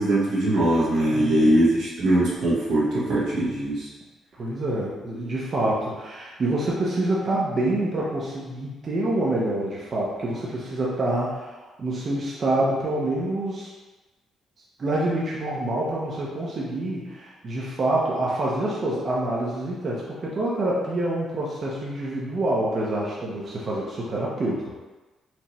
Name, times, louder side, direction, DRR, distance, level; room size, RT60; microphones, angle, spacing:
voice 1, 0.0-3.9, right 1 dB, 80° right, -7 dB, 1.3 m, -21 dB
voice 2, 1.1-1.6 4.4-13.7 14.8-24.7, right 1 dB, 45° right, -5 dB, 0.8 m, -26 dB
4.5 x 2.7 x 3.1 m, 1.2 s
cardioid pair, 90°, 0 cm